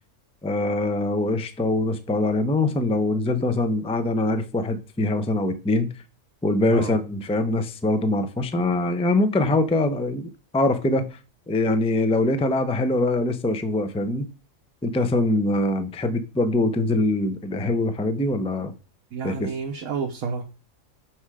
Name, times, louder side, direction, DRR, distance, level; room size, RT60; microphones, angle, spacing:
voice 1, 0.4-5.9 6.4-11.2 11.5-14.3 14.8-18.7 19.2-19.5, left 2 dB, 5° left, 0.5 m, -23 dB
voice 2, 6.6-7.0 19.1-20.4, right 5 dB, 80° right, 1.4 m, -30 dB
6.4 x 6.1 x 4.8 m
omnidirectional pair, 1.4 m